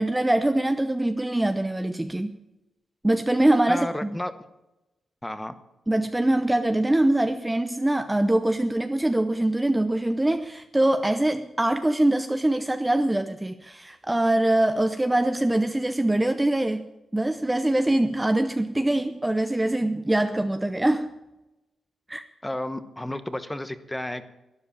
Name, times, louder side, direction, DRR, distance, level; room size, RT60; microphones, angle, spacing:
voice 1, 0.0-2.3 3.0-4.1 5.9-16.8 17.1-21.1 22.1-22.2, right 1 dB, 10° right, 9 dB, 0.7 m, -23 dB
voice 2, 3.7-4.3 5.2-5.6 22.4-24.2, left 1 dB, 10° left, 11 dB, 1.1 m, -32 dB
12.5 x 10.0 x 8.6 m, 0.99 s
cardioid pair, 95°, 0 cm